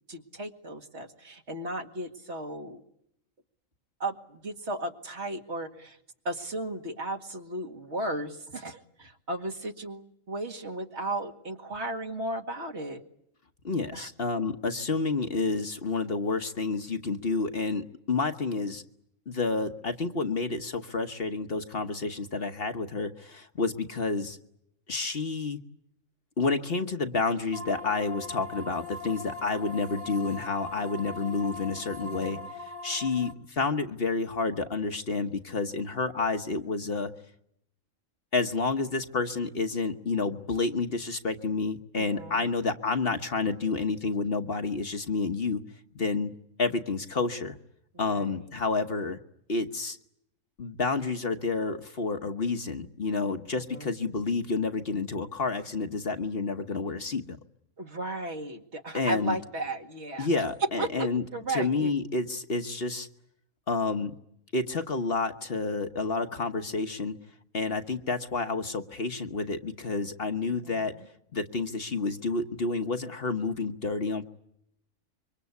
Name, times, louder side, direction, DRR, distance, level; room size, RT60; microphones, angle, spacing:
voice 1, 0.1-2.8 4.0-6.0 6.2-13.0 13.9-14.1 32.0-32.5 41.9-42.5 48.1-48.4 53.5-53.9 57.8-60.3 60.8-61.9 70.5-70.9, right 1 dB, 55° right, 4 dB, 2.3 m, -35 dB
voice 2, 13.6-18.8 19.3-24.4 24.9-25.6 26.4-32.4 32.8-37.1 38.3-45.6 45.9-46.3 46.6-47.6 48.0-49.2 49.5-50.0 50.6-57.4 58.9-59.4 60.2-61.2 61.5-63.1 63.7-64.1 64.5-67.2 67.5-70.9 71.3-74.3, left 3 dB, 50° left, 7 dB, 1.4 m, -29 dB
sound 1, 27.5-33.3, left 2 dB, 20° left, 1.4 m, -40 dB
26.0 x 24.0 x 8.3 m, 0.77 s
omnidirectional pair, 1.4 m